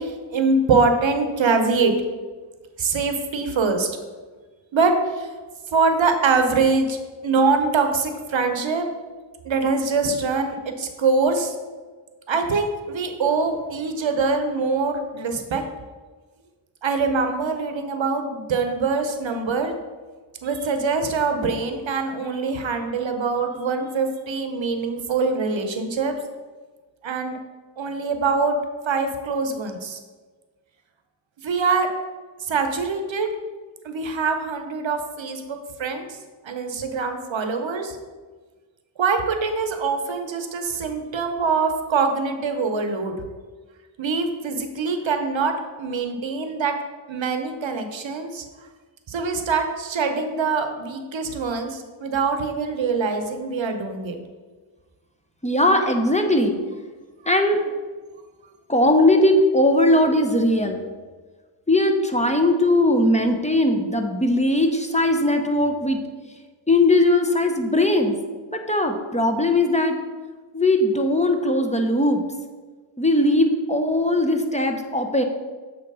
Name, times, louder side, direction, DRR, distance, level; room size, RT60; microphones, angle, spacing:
voice 1, 0.0-1.9 2.8-3.9 4.7-5.3 5.7-7.0 7.2-8.9 9.4-11.5 12.3-15.6 16.8-19.7 20.4-26.2 27.0-27.4 27.8-28.6 28.9-30.0 31.4-31.9 32.4-33.3 33.8-36.2 36.4-38.0 39.0-43.2 44.0-46.8 47.1-48.4 49.1-54.2, right 4 dB, 80° right, 6 dB, 0.8 m, -23 dB
voice 2, 55.4-56.6 57.2-57.8 58.7-60.8 61.7-66.0 66.7-68.2 68.5-70.0 70.5-72.2 73.0-75.2, left 1 dB, 15° left, 4 dB, 0.7 m, -19 dB
7.3 x 2.9 x 5.3 m, 1.4 s
cardioid pair, 45°, 45 cm